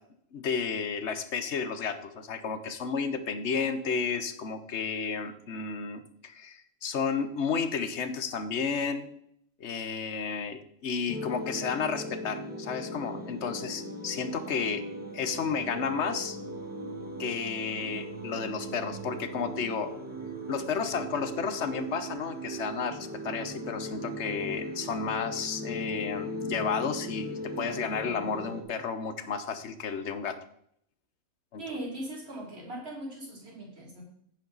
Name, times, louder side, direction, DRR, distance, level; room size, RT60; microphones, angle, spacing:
voice 1, 0.3-9.1 9.6-14.8 15.1-16.4 17.2-19.9 20.5-30.4 31.5-31.6, left 5 dB, 55° left, 10 dB, 1.2 m, -32 dB
sound 1, 11.1-28.6, equal, 5° right, 1.3 m, -38 dB
voice 2, 31.6-34.0, right 1 dB, 45° right, -2 dB, 3.5 m, -39 dB
10.0 x 9.0 x 4.0 m, 0.69 s
omnidirectional pair, 1.5 m